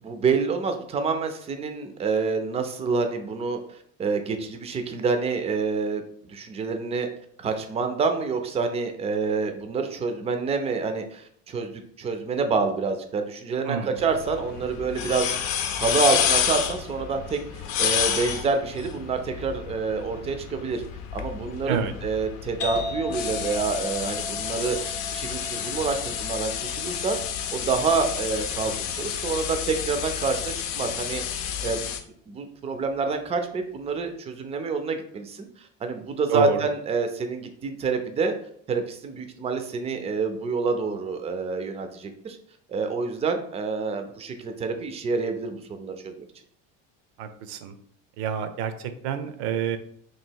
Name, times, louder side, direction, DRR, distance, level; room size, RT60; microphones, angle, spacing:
voice 1, 0.0-7.1 7.4-20.8 21.1-26.5 26.8-27.2 27.5-31.9 32.3-38.3 38.7-42.4 42.7-46.3, right 4 dB, 15° right, 7 dB, 0.4 m, -27 dB
voice 2, 13.6-14.0 21.7-21.9 36.3-36.6 47.2-47.7 48.2-49.8, right 8 dB, 75° right, 10 dB, 0.6 m, -28 dB
sound 1, 14.0-32.0, left 9 dB, 80° left, 0.6 m, -30 dB
sound 2, 22.6-30.0, left 1 dB, 40° left, 0.6 m, -38 dB
3.0 x 2.7 x 4.5 m, 0.65 s
cardioid pair, 125°, 38 cm